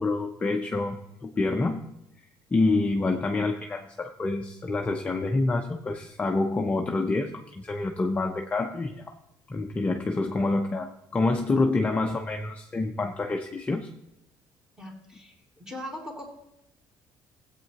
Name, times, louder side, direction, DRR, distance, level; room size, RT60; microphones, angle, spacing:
voice 1, 0.0-1.8 2.5-9.0 9.5-13.9, left 3 dB, 15° left, 3 dB, 0.6 m, -27 dB
voice 2, 14.8-16.3, left 1 dB, 5° right, -1 dB, 2.3 m, -40 dB
16.5 x 8.3 x 2.9 m, 0.88 s
cardioid pair, 155°, 8 cm